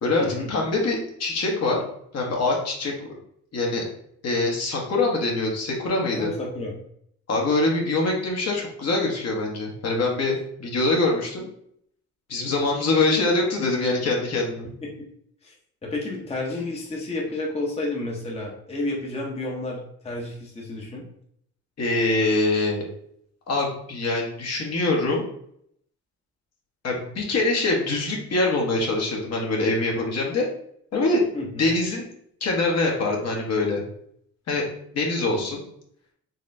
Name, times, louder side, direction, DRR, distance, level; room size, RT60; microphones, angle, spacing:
voice 1, 0.0-1.8 2.1-3.1 3.5-3.8 4.2-6.3 7.3-11.5 12.3-14.7 21.8-22.8 23.5-25.3 26.8-30.5 30.9-31.2 31.6-32.1 32.4-33.8 34.5-34.6 34.9-35.6, left 2 dB, 55° left, -1 dB, 1.2 m, -24 dB
voice 2, 6.1-6.7 14.8-14.9 15.4-15.5 15.8-21.0 31.3-31.6, left 2 dB, 20° left, -2 dB, 0.8 m, -31 dB
4.1 x 3.1 x 2.6 m, 0.70 s
cardioid pair, 90°, 30 cm